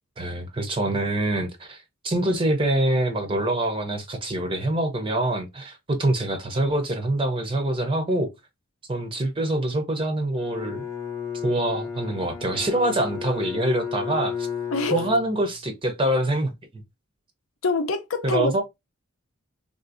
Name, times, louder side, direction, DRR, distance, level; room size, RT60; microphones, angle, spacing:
voice 1, 0.2-8.3 8.9-10.9 11.4-14.5 14.9-16.5 18.2-18.6, right 1 dB, 25° right, 0.5 m, -25 dB
Bowed string instrument, 10.4-15.8, left 7 dB, 15° left, 0.6 m, -33 dB
voice 2, 14.7-15.1 17.6-18.6, left 3 dB, 85° left, 0.6 m, -25 dB
3.6 x 2.5 x 2.5 m
head